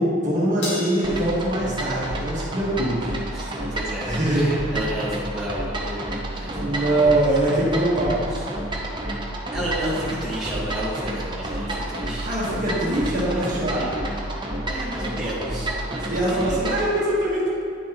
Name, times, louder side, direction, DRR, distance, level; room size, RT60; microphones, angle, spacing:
voice 1, 0.0-3.2 4.0-4.7 6.5-8.2 12.2-14.0 16.1-17.5, right 1 dB, 40° right, -7 dB, 1.6 m, -23 dB
Crash cymbal, 0.6-3.1, left 1 dB, 80° left, 1.9 m, -36 dB
sound 1, 1.0-16.9, right 1 dB, 25° right, 0.7 m, -30 dB
voice 2, 3.3-7.1 8.3-8.4 9.5-12.6 13.3-13.9 14.7-16.8, equal, 5° right, -10 dB, 1.6 m, -32 dB
9.9 x 5.9 x 3.0 m, 2.4 s
head